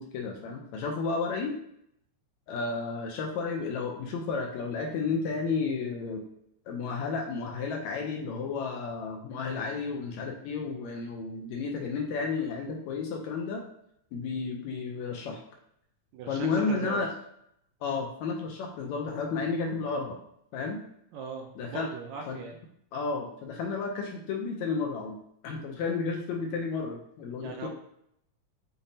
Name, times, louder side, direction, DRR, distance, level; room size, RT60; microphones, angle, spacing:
voice 1, 0.0-1.5 2.5-6.3 6.7-13.6 14.1-15.4 16.3-17.1 17.8-20.2 20.5-20.8 21.6-21.9 22.3-22.4 22.9-27.7, left 4 dB, 75° left, 1 dB, 1.8 m, -32 dB
voice 2, 16.1-17.0 21.1-22.6 27.4-27.7, right 5 dB, 80° right, 3 dB, 1.7 m, -39 dB
7.0 x 2.7 x 2.6 m, 0.72 s
omnidirectional pair, 3.5 m